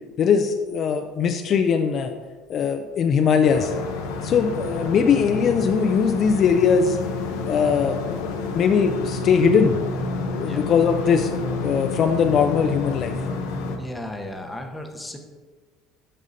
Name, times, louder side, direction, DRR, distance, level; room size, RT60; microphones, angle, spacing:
voice 1, 0.2-2.1 2.5-3.7 4.2-7.0 7.5-8.0 8.5-9.8 10.4-11.3 11.6-13.1, left 6 dB, 45° left, 6 dB, 0.4 m, -20 dB
sound 1, 3.4-13.8, left 4 dB, 90° left, 0.8 m, -29 dB
voice 2, 13.8-15.2, left 1 dB, 10° left, 3 dB, 0.8 m, -34 dB
8.2 x 5.4 x 2.7 m, 1.4 s
cardioid pair, 115°, 0 cm